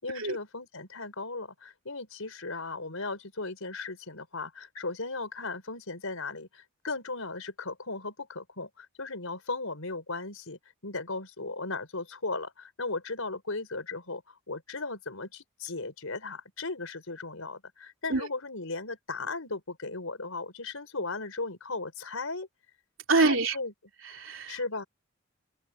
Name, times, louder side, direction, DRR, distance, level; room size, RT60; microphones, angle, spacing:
voice 1, 0.0-22.5 23.1-23.7 24.5-24.8, left 3 dB, 80° left, 4.6 m, -36 dB
voice 2, 23.1-23.6 24.0-24.6, right 3 dB, 70° right, 3.3 m, -26 dB
head